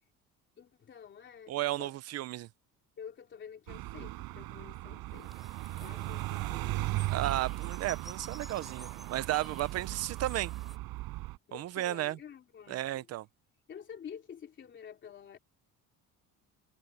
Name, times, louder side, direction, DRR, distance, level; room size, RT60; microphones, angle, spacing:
voice 1, 0.6-2.0 3.0-5.3 5.8-7.0 11.5-13.1 13.7-15.4, left 8 dB, 30° left, 3.3 m, -49 dB
voice 2, 1.5-2.5 7.1-10.5 11.5-12.2 12.7-13.3, right 15 dB, 45° right, 0.7 m, -33 dB
sound 1, 3.7-11.4, right 18 dB, 75° right, 7.8 m, -37 dB
sound 2, 5.1-10.8, equal, ahead, 5.7 m, -53 dB
cardioid pair, 180°, 36 cm